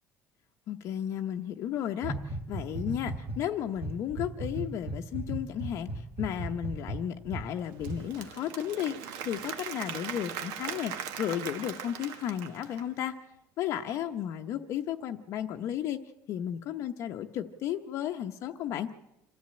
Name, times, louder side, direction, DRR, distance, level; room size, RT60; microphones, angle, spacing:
voice 1, 0.7-13.1 13.6-16.0 16.3-18.9, left 10 dB, 45° left, 5 dB, 0.8 m, -34 dB
sound 1, 2.0-3.4 3.8-7.5 7.8-8.0, right 2 dB, 25° right, 1.5 m, -36 dB
Applause / Crowd, 7.6-13.0, right 8 dB, 75° right, 1.6 m, -40 dB
26.0 x 13.5 x 8.7 m, 0.89 s
cardioid pair, 175°, 7 cm